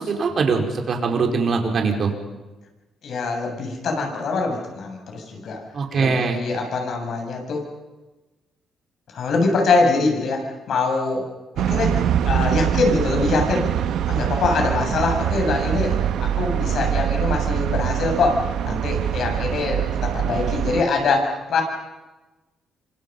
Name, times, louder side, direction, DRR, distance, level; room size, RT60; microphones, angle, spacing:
voice 1, 0.0-2.1 5.7-6.4, right 4 dB, 50° right, 2 dB, 4.9 m, -22 dB
voice 2, 3.0-5.6 6.0-7.6 9.1-11.2 11.7-12.0 12.3-13.6 14.1-21.6, left 3 dB, 65° left, 2 dB, 7.9 m, -23 dB
sound 1, 11.6-20.8, right 10 dB, 80° right, 1.4 m, -23 dB
27.5 x 26.0 x 5.7 m, 1.1 s
cardioid pair, 90°, 0 cm